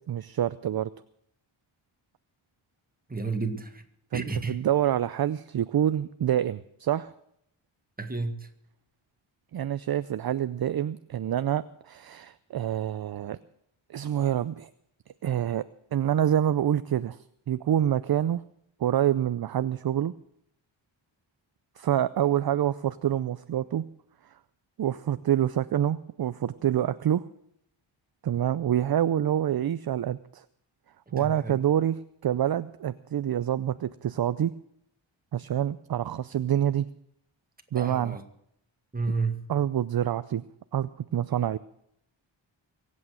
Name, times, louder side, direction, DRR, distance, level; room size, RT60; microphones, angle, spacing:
voice 1, 0.1-0.9 4.1-7.1 9.5-13.4 13.9-14.7 15.2-15.6 15.9-17.2 17.5-18.4 18.8-20.1 21.8-23.8 24.8-27.2 28.2-30.4 31.1-34.5 35.3-36.9 37.7-38.2 39.5-40.4 40.7-41.6, right 10 dB, 50° right, 0.6 m, -27 dB
voice 2, 3.1-3.8 4.1-4.6 8.0-8.5 31.2-31.6 37.8-38.2 38.9-39.4, right 3 dB, 20° right, 1.9 m, -31 dB
23.5 x 8.6 x 6.4 m
wide cardioid pair, 100°, 48 cm